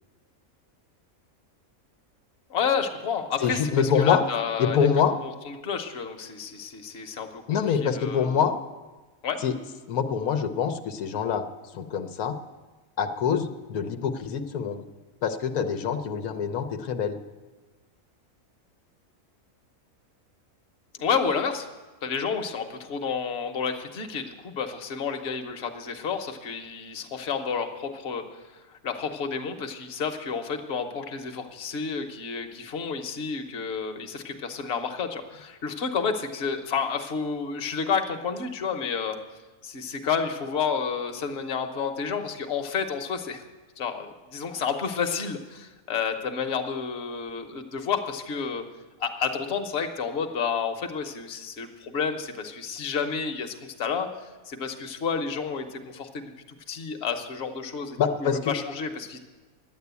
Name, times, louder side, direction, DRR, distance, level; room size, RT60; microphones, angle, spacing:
voice 1, 2.5-4.8 5.5-8.4 9.2-9.4 21.0-21.7 22.0-28.2 28.8-39.2 39.6-43.4 43.8-48.6 49.0-56.1 56.7-59.2, left 6 dB, 50° left, 4 dB, 1.2 m, -30 dB
voice 2, 3.4-4.2 4.6-5.2 7.5-8.6 9.4-9.5 9.9-11.4 11.7-12.4 13.0-14.8 15.2-17.2 58.0-58.5, left 7 dB, 85° left, 7 dB, 1.3 m, -25 dB
11.0 x 9.4 x 8.2 m, 1.2 s
omnidirectional pair, 1.5 m